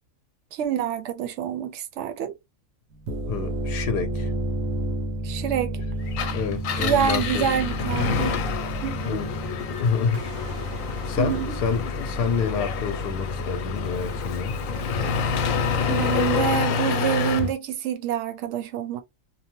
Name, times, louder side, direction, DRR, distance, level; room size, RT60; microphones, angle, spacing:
voice 1, 0.5-2.4 5.2-5.8 6.8-8.4 8.8-9.2 11.2-11.6 15.9-19.0, right 9 dB, 70° right, 0.8 m, -27 dB
sound 1, 2.9-15.9, equal, 90° right, 1.0 m, -32 dB
voice 2, 3.3-4.3 6.3-7.5 9.0-9.3 9.7-10.2 11.0-14.6, left 6 dB, 55° left, 0.7 m, -28 dB
Engine, 6.1-17.5, left 6 dB, 85° left, 1.0 m, -28 dB
2.7 x 2.1 x 2.9 m
omnidirectional pair, 1.4 m